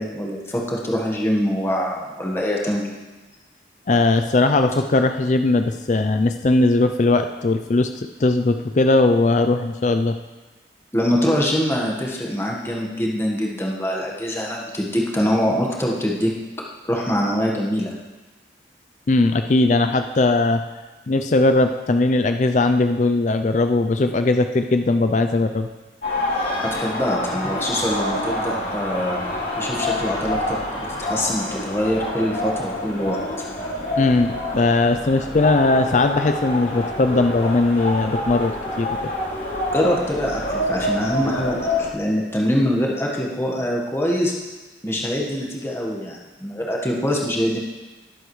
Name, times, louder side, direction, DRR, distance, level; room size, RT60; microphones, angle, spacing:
voice 1, 0.0-2.9 10.9-16.3 16.8-17.9 26.6-29.2 29.6-33.5 39.7-44.3 44.8-47.6, equal, 15° left, -2 dB, 1.3 m, -24 dB
voice 2, 3.9-10.2 19.1-20.6 21.1-25.7 34.0-38.5 38.8-38.9, left 2 dB, 40° left, 7 dB, 0.4 m, -19 dB
sound 1, 26.0-41.9, left 1 dB, 60° left, 3.4 m, -27 dB
19.0 x 8.1 x 3.2 m, 1.2 s
head